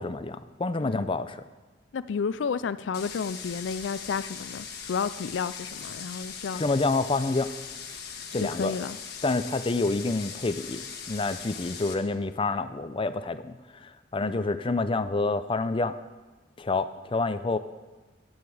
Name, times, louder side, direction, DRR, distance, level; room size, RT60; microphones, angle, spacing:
voice 1, 0.0-1.4 6.6-7.5 8.3-8.7 9.2-16.0 16.6-17.6, left 3 dB, 30° left, 0.6 m, -28 dB
voice 2, 1.9-6.6 8.4-9.0 14.2-14.6, left 6 dB, 90° left, 0.4 m, -32 dB
sound 1, 2.9-11.9, left 6 dB, 60° left, 1.4 m, -40 dB
15.0 x 9.6 x 4.9 m
head